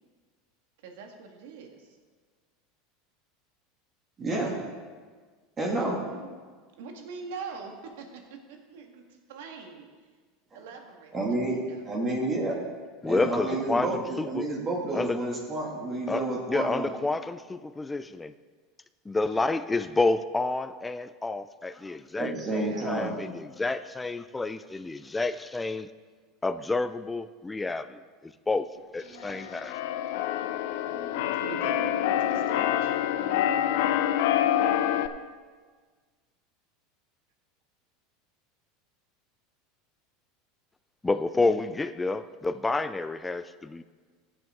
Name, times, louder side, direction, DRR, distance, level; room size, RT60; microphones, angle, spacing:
voice 1, 0.8-2.0 5.7-6.3 6.8-8.2 8.5-9.0 9.3-9.9 10.5-11.9 19.2-19.5 22.6-23.1 29.0-29.6 30.8-33.7, right 5 dB, 80° right, 3 dB, 1.7 m, -43 dB
voice 2, 4.2-4.6 5.6-6.0 11.1-12.5 13.1-16.9 22.2-23.2, right 2 dB, 25° right, -2 dB, 2.1 m, -30 dB
voice 3, 13.0-14.5 14.9-15.2 16.1-18.3 19.1-25.9 26.4-28.0 28.5-28.7 28.9-29.7 41.0-43.8, left 3 dB, 10° left, 12 dB, 0.3 m, -29 dB
Keyboard (musical), 29.2-35.1, left 11 dB, 75° left, 0.5 m, -26 dB
15.0 x 7.8 x 3.7 m, 1.5 s
supercardioid pair, 120°, 0 cm